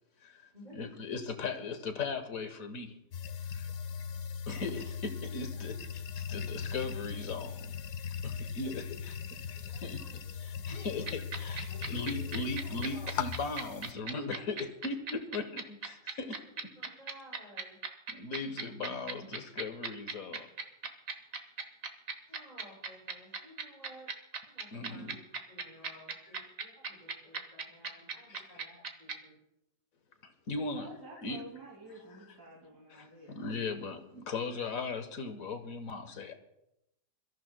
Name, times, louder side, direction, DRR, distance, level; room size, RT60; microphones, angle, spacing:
voice 1, 0.7-3.0 3.5-3.7 4.5-7.8 8.2-9.2 9.5-10.0 10.4-16.4 18.1-20.5 24.7-25.2 28.3-28.4 30.2-30.9 31.2-31.4 32.9-36.3, left 4 dB, 55° left, 8 dB, 1.5 m, -38 dB
sound 1, 3.1-13.9, left 7 dB, 70° left, 1.3 m, -39 dB
voice 2, 9.5-11.0 11.7-11.8 12.2-12.3 12.6-13.1 16.8-17.8 22.3-24.1 24.5-25.2 25.5-29.4, left 1 dB, 25° right, -7 dB, 7.1 m, -55 dB
sound 2, 10.8-29.1, right 5 dB, 55° right, 1.5 m, -37 dB
voice 3, 30.5-33.3, right 1 dB, 75° right, -3 dB, 3.2 m, -50 dB
27.5 x 14.0 x 2.2 m, 0.86 s
omnidirectional pair, 1.8 m